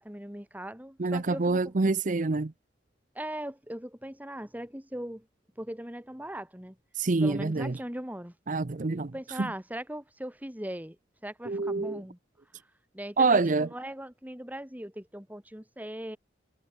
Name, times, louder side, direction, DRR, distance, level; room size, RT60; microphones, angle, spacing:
voice 1, 0.0-1.7 3.1-5.3 5.6-6.8 7.2-8.3 9.0-11.0 11.2-12.2 12.9-16.2, right 1 dB, 10° right, 2.8 m, -39 dB
voice 2, 1.0-2.5 6.9-7.7 8.5-9.1 9.4-9.5 11.5-12.0 13.2-13.7, right 3 dB, 45° right, 0.7 m, -26 dB
head